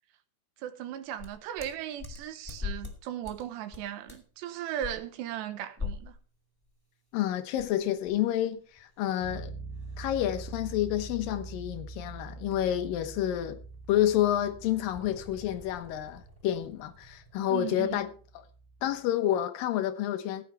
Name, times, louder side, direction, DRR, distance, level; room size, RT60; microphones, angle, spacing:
voice 1, 0.6-6.1 17.5-18.0, right 11 dB, 75° right, 3.1 m, -37 dB
sound 1, 1.2-3.0 3.2-3.4 3.7-4.3 4.8-4.9 5.8-6.2 6.6-6.7 7.6-12.8 13.1-13.3 13.6-17.4, left 5 dB, 20° left, 0.6 m, -44 dB
voice 2, 7.1-9.5 10.0-13.6 13.9-18.1 18.8-20.4, left 12 dB, 70° left, 2.3 m, -29 dB
sound 2, 9.2-18.9, right 4 dB, 60° right, 5.6 m, -45 dB
15.5 x 11.0 x 3.5 m
omnidirectional pair, 5.3 m